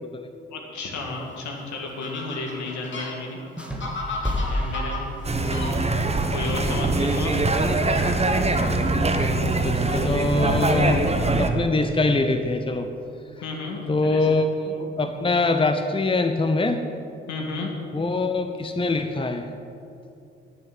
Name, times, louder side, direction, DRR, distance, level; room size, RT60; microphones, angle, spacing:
voice 1, 0.5-3.4 4.5-5.1 5.9-7.3 13.4-14.3 14.6-14.7 17.3-17.7, left 3 dB, 65° left, 1 dB, 2.1 m, -33 dB
Fowl, 0.9-7.1, left 2 dB, 35° left, 2.6 m, -36 dB
sound 1, 3.6-5.8, left 1 dB, 5° right, 1.8 m, -30 dB
sound 2, 5.2-11.5, right 2 dB, 20° right, 1.2 m, -22 dB
voice 2, 5.4-5.8 9.4-11.0 11.4-12.9 13.9-14.4 14.8-16.8 17.9-19.5, left 3 dB, 15° left, 7 dB, 0.9 m, -24 dB
10.0 x 7.0 x 9.1 m, 2.7 s
figure-of-eight pair, 40°, 31 cm